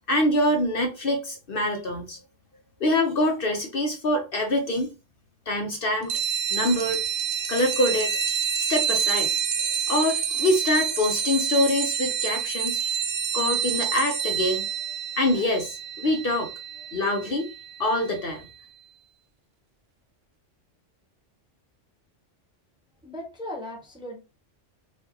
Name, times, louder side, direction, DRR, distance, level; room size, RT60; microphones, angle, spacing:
voice 1, 0.1-2.2 2.8-4.9 5.5-6.1 6.5-7.0 7.5-9.3 9.6-12.9 13.3-14.7 15.2-16.5 16.9-17.5 17.8-18.5, left 1 dB, 55° left, 0.8 m, -25 dB
sound 1, 6.1-18.2, right 8 dB, 75° right, 1.0 m, -28 dB
voice 2, 23.0-24.2, left 1 dB, 5° right, 0.6 m, -37 dB
4.5 x 2.6 x 2.8 m
omnidirectional pair, 1.2 m